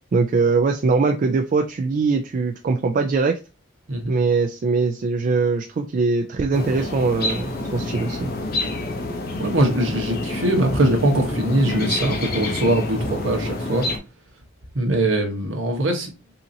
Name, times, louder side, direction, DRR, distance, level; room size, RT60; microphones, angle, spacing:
voice 1, 0.1-3.4 4.1-8.3, right 4 dB, 40° right, 0.3 m, -21 dB
sound 1, 6.5-14.0, left 2 dB, 50° left, 0.7 m, -28 dB
voice 2, 9.4-13.9 14.7-16.1, right 1 dB, 70° right, 1.0 m, -21 dB
3.7 x 2.8 x 2.7 m
head